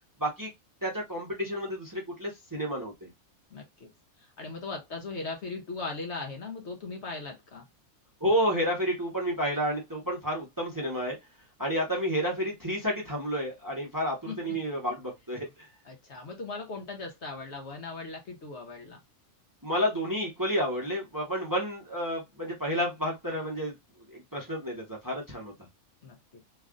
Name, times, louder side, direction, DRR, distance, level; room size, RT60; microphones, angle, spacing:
voice 1, 0.2-0.5 0.8-3.1 8.2-11.2 11.6-15.7 19.6-23.7 24.1-25.5, equal, 15° right, 0.9 m, -30 dB
voice 2, 3.5-3.9 4.2-7.7 14.3-14.6 15.8-19.0 26.0-26.4, left 3 dB, 60° left, 0.9 m, -39 dB
3.2 x 2.4 x 3.6 m
omnidirectional pair, 1.5 m